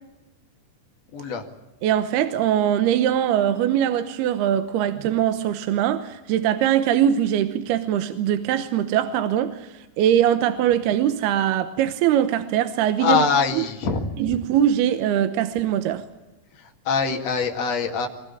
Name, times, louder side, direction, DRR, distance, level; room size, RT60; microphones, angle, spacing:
voice 1, 1.1-1.4 13.0-14.1 16.9-18.1, left 5 dB, 45° left, 2.8 m, -23 dB
voice 2, 1.8-13.2 13.5-13.7 14.2-16.0, right 10 dB, 75° right, 2.8 m, -22 dB
23.5 x 19.0 x 8.7 m
omnidirectional pair, 5.1 m